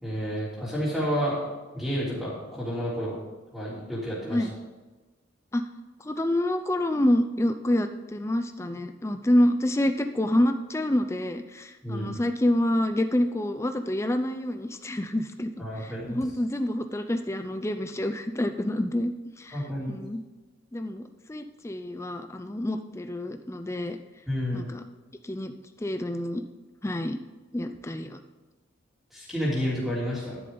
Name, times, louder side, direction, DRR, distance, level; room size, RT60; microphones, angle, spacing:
voice 1, 0.0-1.4 1.7-3.2 3.5-4.5 11.8-12.1 15.6-16.2 19.5-19.9 24.3-24.6 29.1-30.4, equal, ahead, -9 dB, 3.4 m, -30 dB
voice 2, 6.0-20.2 20.7-24.0 24.5-24.8 25.2-25.5 25.8-26.4 26.8-27.2 27.5-28.2, left 1 dB, 15° left, 8 dB, 0.4 m, -27 dB
11.0 x 10.0 x 3.9 m, 1.2 s
head